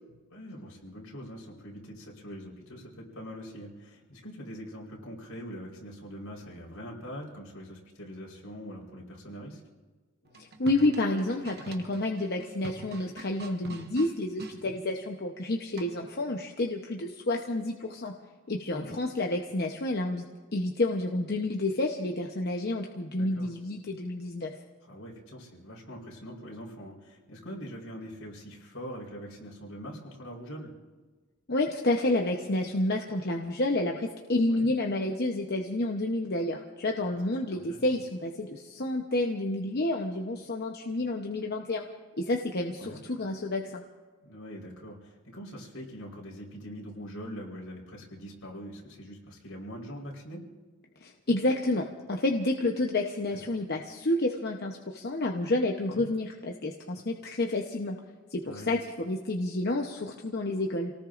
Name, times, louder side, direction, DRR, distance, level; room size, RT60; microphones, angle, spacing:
voice 1, 0.3-9.6 14.6-14.8 18.7-18.9 23.2-23.5 24.8-30.7 34.5-34.7 37.5-37.8 42.8-43.0 44.2-50.4 53.5-53.6 55.9-56.0 58.5-58.7, equal, 75° left, -2 dB, 4.3 m, -43 dB
sound 1, 10.3-14.6 15.8-16.2, right 3 dB, 50° right, 1.1 m, -44 dB
voice 2, 10.4-18.1 18.5-20.2 20.5-24.5 31.5-41.8 42.2-43.8 51.0-57.9 58.3-60.9, left 2 dB, 50° left, 1 dB, 0.9 m, -29 dB
29.0 x 18.5 x 2.6 m, 1.4 s
head